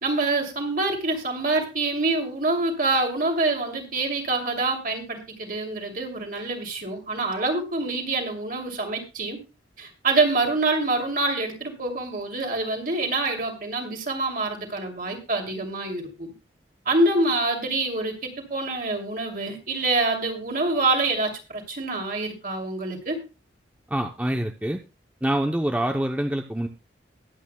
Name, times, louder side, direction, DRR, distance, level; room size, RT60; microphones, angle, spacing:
voice 1, 0.0-9.4 9.8-16.3 16.9-23.2, right 2 dB, 50° right, 2 dB, 2.6 m, -26 dB
voice 2, 23.9-24.8 25.2-26.7, right 1 dB, 10° right, 4 dB, 0.6 m, -25 dB
21.0 x 8.5 x 2.2 m, 0.30 s
head